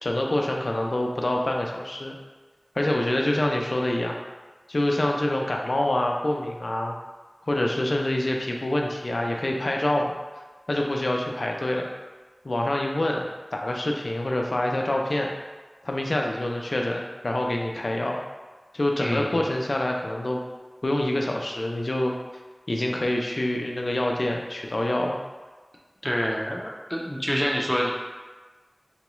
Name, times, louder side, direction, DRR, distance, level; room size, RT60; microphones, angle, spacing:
voice 1, 0.0-2.1 2.8-4.2 4.7-7.0 7.5-10.2 10.7-11.9 12.4-15.3 15.8-18.2 18.7-20.4 20.8-22.1 22.7-25.2, left 1 dB, 80° left, 1 dB, 0.4 m, -26 dB
voice 2, 19.0-19.4 26.0-27.9, equal, 15° left, -1 dB, 0.5 m, -27 dB
3.8 x 2.3 x 3.0 m, 1.3 s
wide cardioid pair, 45°, 0 cm